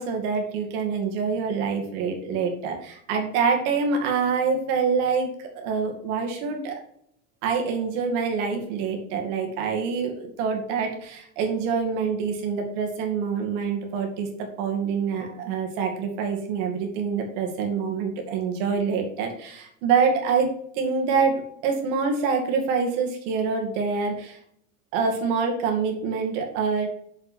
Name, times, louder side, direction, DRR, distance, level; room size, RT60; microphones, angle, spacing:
voice 1, 0.0-6.7 7.4-14.3 14.6-20.5 20.7-24.4 24.9-26.9, right 5 dB, 75° right, 3 dB, 2.2 m, -26 dB
6.7 x 5.8 x 4.2 m, 0.69 s
supercardioid pair, 115°, 37 cm